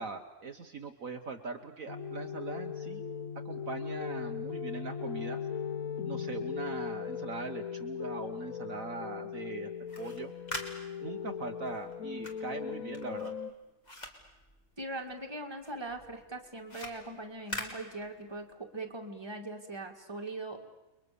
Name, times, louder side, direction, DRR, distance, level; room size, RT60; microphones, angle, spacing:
voice 1, 0.0-3.0 3.4-5.4 6.0-9.7 10.0-10.3 11.0-13.3, right 4 dB, 60° right, 5 dB, 1.6 m, -41 dB
sound 1, 1.9-13.5, left 7 dB, 60° left, 1.5 m, -38 dB
sound 2, 9.7-15.3 15.6-18.5, left 1 dB, 25° left, 2.9 m, -44 dB
voice 2, 14.8-20.6, right 2 dB, 15° right, 2 dB, 2.3 m, -41 dB
30.0 x 22.5 x 6.9 m, 1.0 s
omnidirectional pair, 1.7 m